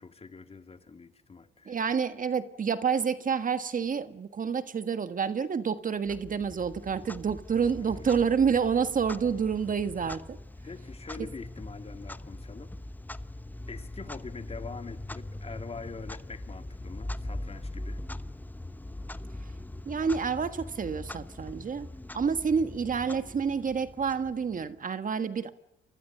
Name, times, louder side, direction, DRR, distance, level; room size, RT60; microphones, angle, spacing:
voice 1, 0.0-1.8 7.9-8.1 10.6-12.7 13.7-18.0, left 4 dB, 30° left, 8 dB, 2.2 m, -44 dB
voice 2, 1.6-10.4 19.4-19.5 19.8-21.9 22.1-25.5, right 6 dB, 40° right, 11 dB, 1.5 m, -28 dB
Clock, 6.1-24.8, left 1 dB, 10° left, 1.0 m, -41 dB
30.0 x 25.0 x 6.8 m, 0.84 s
cardioid pair, 90°, 20 cm